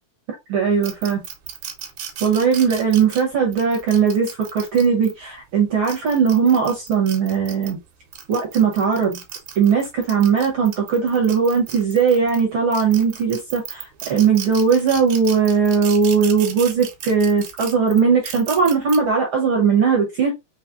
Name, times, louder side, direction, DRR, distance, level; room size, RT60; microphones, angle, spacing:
voice 1, 0.5-1.2 2.2-7.8 8.3-9.2 9.6-20.3, right 6 dB, 60° right, 1.6 m, -19 dB
sound 1, 0.8-5.1 5.7-7.7 8.1-12.4 12.7-19.0, right 9 dB, 80° right, 2.5 m, -35 dB
5.7 x 3.3 x 2.6 m
omnidirectional pair, 3.4 m